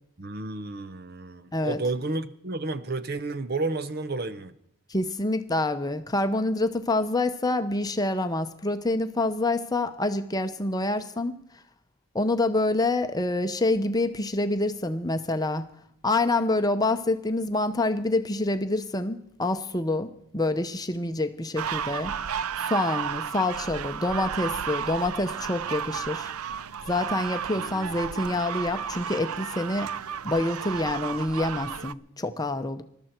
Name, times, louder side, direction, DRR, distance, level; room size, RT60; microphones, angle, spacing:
voice 1, 0.2-4.5 27.6-27.9, right 3 dB, 45° right, 12 dB, 0.8 m, -31 dB
voice 2, 4.9-11.3 12.1-15.7 16.0-22.1 22.6-26.3 26.9-29.9 30.2-32.8, left 2 dB, 15° left, 8 dB, 0.8 m, -27 dB
sound 1, 21.6-31.9, right 8 dB, 85° right, 0.5 m, -33 dB
21.0 x 13.0 x 4.5 m, 0.74 s
head